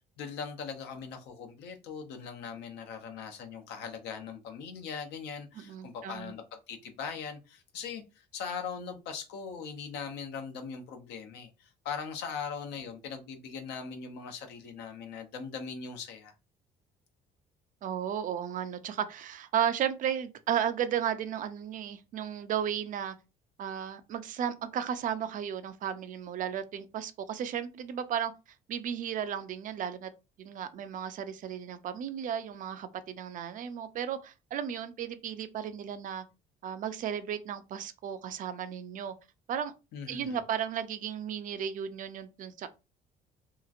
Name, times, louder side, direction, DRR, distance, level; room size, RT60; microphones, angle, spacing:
voice 1, 0.2-8.0 8.3-16.3 39.9-40.4, left 6 dB, 85° left, 0.7 m, -40 dB
voice 2, 5.6-6.3 17.8-23.2 23.6-28.3 28.7-30.1 30.4-36.2 36.6-39.1 39.5-39.7 40.1-42.7, right 9 dB, 50° right, 0.4 m, -34 dB
2.9 x 2.4 x 2.4 m
cardioid pair, 110°, 17 cm